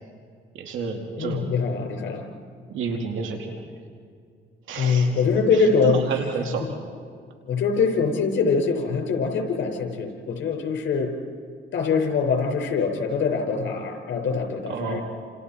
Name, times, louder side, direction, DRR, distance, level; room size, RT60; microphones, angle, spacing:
voice 1, 0.5-1.5 2.7-3.6 4.7-5.1 5.5-6.7 14.7-15.0, right 5 dB, 80° right, 2 dB, 2.7 m, -30 dB
voice 2, 1.2-2.2 4.8-6.0 7.5-11.1 11.7-15.0, left 5 dB, 70° left, 3 dB, 5.3 m, -23 dB
29.5 x 28.0 x 4.5 m, 2.2 s
cardioid pair, 90°, 20 cm